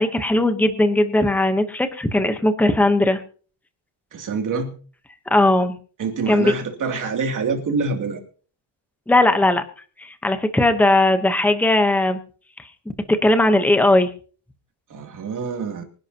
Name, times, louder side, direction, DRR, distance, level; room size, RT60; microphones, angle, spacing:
voice 1, 0.0-3.2 5.3-5.8 6.3-6.5 9.1-9.6 10.0-12.2 13.1-14.1, left 1 dB, 5° left, 8 dB, 0.9 m, -18 dB
voice 2, 4.1-4.7 6.0-8.2 14.9-15.8, right 4 dB, 40° right, 4 dB, 2.8 m, -26 dB
25.0 x 11.0 x 2.9 m, 0.40 s
cardioid pair, 170°, 50 cm